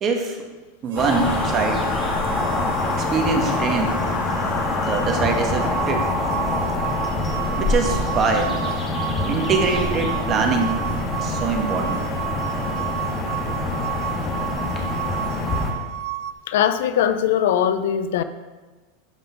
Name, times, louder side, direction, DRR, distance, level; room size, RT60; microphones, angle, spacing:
voice 1, 0.0-0.4 0.8-1.8 2.9-4.0 4.7-6.1 7.5-8.5 9.2-10.8 11.2-12.0, right 4 dB, 30° right, 3 dB, 1.4 m, -23 dB
Harmonica, 0.9-6.4, right 6 dB, 75° right, 1.2 m, -41 dB
sound 1, 1.0-15.7, left 2 dB, 25° left, 1.7 m, -25 dB
sound 2, 5.6-16.3, right 13 dB, 55° right, 0.4 m, -31 dB
voice 2, 16.5-18.2, left 9 dB, 80° left, 11 dB, 0.6 m, -20 dB
12.0 x 5.2 x 5.1 m, 1.3 s
supercardioid pair, 140°, 0 cm